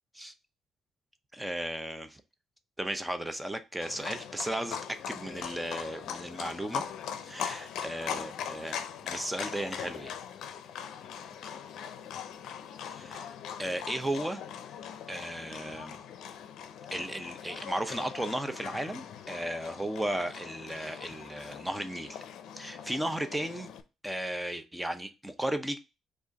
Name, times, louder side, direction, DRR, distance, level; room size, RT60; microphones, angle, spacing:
voice 1, 1.3-2.2 2.8-6.8 7.2-10.1 12.8-13.3 13.6-14.4 15.1-16.0 16.9-22.2 22.6-23.7 24.0-25.8, right 1 dB, 10° right, 0.6 m, -35 dB
Livestock farm animals working animals, 3.8-23.8, left 8 dB, 80° left, 0.5 m, -41 dB
4.8 x 2.5 x 3.9 m
cardioid pair, 90°, 0 cm